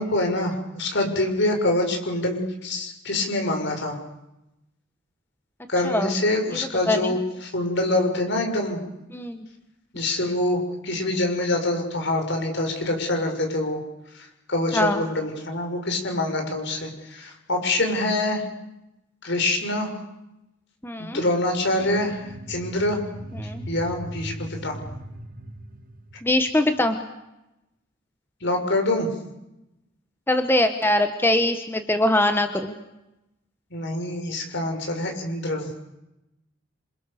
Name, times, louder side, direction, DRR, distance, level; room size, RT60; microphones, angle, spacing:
voice 1, 0.0-4.0 5.7-8.8 9.9-13.8 14.1-18.4 19.2-20.0 21.0-23.0 23.7-24.8 28.4-29.1 33.7-35.7, left 1 dB, 65° left, 4 dB, 6.5 m, -25 dB
voice 2, 6.9-7.2 9.1-9.5 14.7-15.0 20.8-21.2 23.4-23.7 26.2-27.0 30.3-32.8, left 1 dB, 10° left, 7 dB, 1.5 m, -22 dB
sound 1, 21.8-26.9, right 1 dB, 45° right, 1.8 m, -39 dB
29.0 x 27.0 x 6.9 m, 0.92 s
head